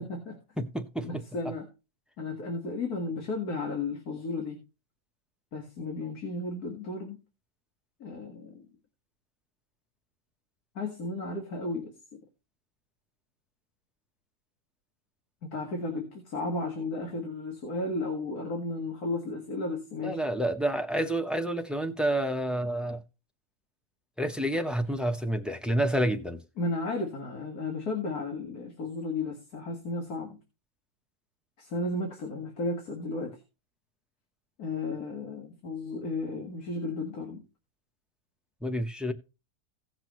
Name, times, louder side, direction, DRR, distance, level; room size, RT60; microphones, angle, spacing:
voice 1, 0.0-0.4 1.0-1.7 2.2-4.6 5.5-7.2 8.0-8.6 10.8-11.9 15.5-20.2 26.6-30.4 31.6-33.4 34.6-37.4, left 2 dB, 70° left, 2.3 m, -34 dB
voice 2, 0.6-1.5 20.0-23.0 24.2-26.4 38.6-39.1, right 1 dB, ahead, 0.3 m, -29 dB
17.0 x 6.1 x 3.1 m
omnidirectional pair, 1.7 m